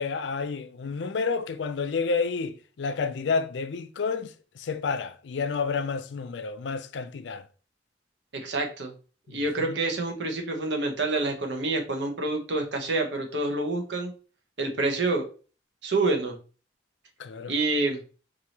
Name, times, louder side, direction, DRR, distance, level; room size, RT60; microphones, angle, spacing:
voice 1, 0.0-7.5 9.3-9.8 17.2-17.5, left 4 dB, 85° left, 0.4 m, -30 dB
voice 2, 8.4-8.9 9.3-14.1 14.6-15.3 15.8-16.4 17.5-18.0, right 2 dB, 80° right, 1.0 m, -27 dB
4.7 x 2.7 x 2.9 m
head